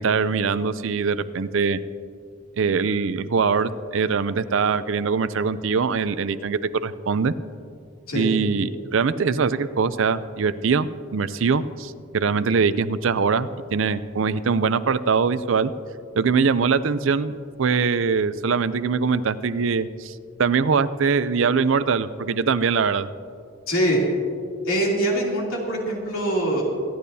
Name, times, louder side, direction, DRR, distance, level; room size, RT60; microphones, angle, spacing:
voice 1, 0.0-1.8 2.6-7.3 8.1-15.7 16.1-17.3 17.6-23.1, right 5 dB, 70° right, 13 dB, 0.5 m, -22 dB
voice 2, 23.7-24.0 24.6-26.6, right 1 dB, 90° left, -3 dB, 3.0 m, -23 dB
25.0 x 10.5 x 2.8 m, 2.3 s
head